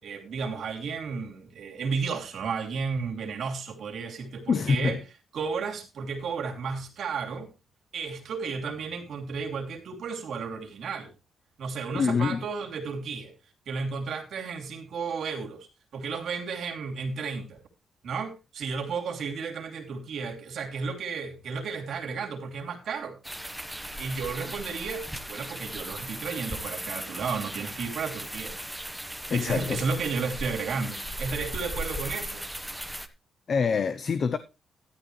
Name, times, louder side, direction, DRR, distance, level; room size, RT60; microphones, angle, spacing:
voice 1, 0.0-5.0 5.3-7.5 7.9-11.1 11.6-13.3 13.7-15.7 15.9-17.6 18.0-23.2 24.0-28.6 29.3-32.4, right 5 dB, 65° right, 2.9 m, -33 dB
voice 2, 4.5-5.0 11.9-12.5 29.3-29.9 33.5-34.4, left 5 dB, 50° left, 0.7 m, -25 dB
sound 1, 23.2-33.1, right 1 dB, 5° right, 1.2 m, -37 dB
13.0 x 11.5 x 3.2 m
cardioid pair, 100°, 0 cm